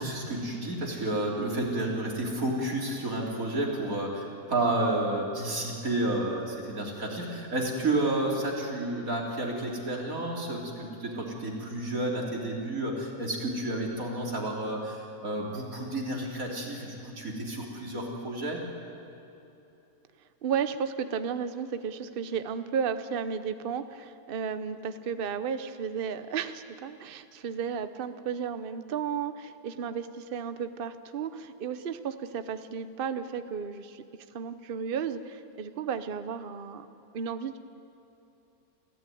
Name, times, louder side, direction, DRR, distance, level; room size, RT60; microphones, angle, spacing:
voice 1, 0.0-18.6, right 1 dB, 60° right, -1 dB, 3.8 m, -31 dB
voice 2, 20.4-34.0 34.3-36.9 37.1-37.6, right 7 dB, 45° right, 11 dB, 0.9 m, -33 dB
28.5 x 14.0 x 9.3 m, 2.9 s
omnidirectional pair, 1.7 m